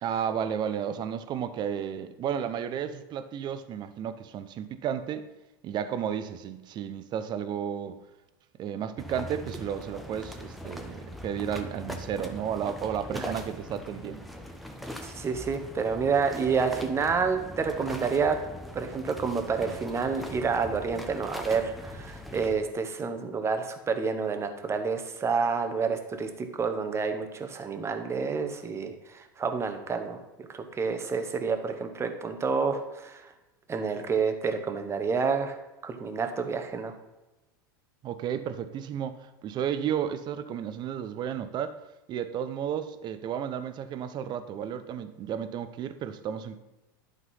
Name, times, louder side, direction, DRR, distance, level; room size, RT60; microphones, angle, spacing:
voice 1, 0.0-5.3 5.6-8.0 8.6-14.2 38.0-41.8 42.1-46.6, right 8 dB, 40° right, 0.8 m, -33 dB
sound 1, 9.0-22.6, left 1 dB, ahead, 0.9 m, -41 dB
voice 2, 15.0-18.4 18.7-33.2 33.7-35.6 35.8-36.9, right 5 dB, 25° right, 1.2 m, -29 dB
11.5 x 4.0 x 5.5 m
hypercardioid pair, 105°, 12 cm